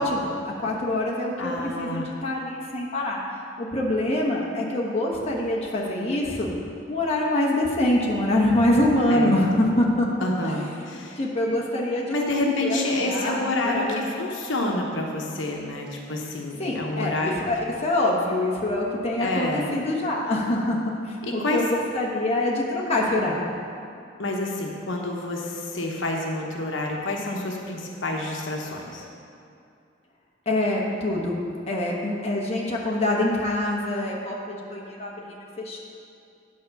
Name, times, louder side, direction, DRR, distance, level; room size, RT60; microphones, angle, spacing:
voice 1, 0.0-3.2 3.6-6.5 6.9-10.1 10.4-10.5 11.2-14.1 16.6-20.8 21.1-23.4 30.5-31.4 31.7-35.8, left 1 dB, 30° left, -3 dB, 1.1 m, -25 dB
voice 2, 1.4-2.1 9.1-9.3 10.2-11.2 12.1-17.4 19.2-19.7 21.2-21.6 24.2-29.1, left 2 dB, 75° left, 0 dB, 1.0 m, -28 dB
9.4 x 4.8 x 6.9 m, 2.5 s
head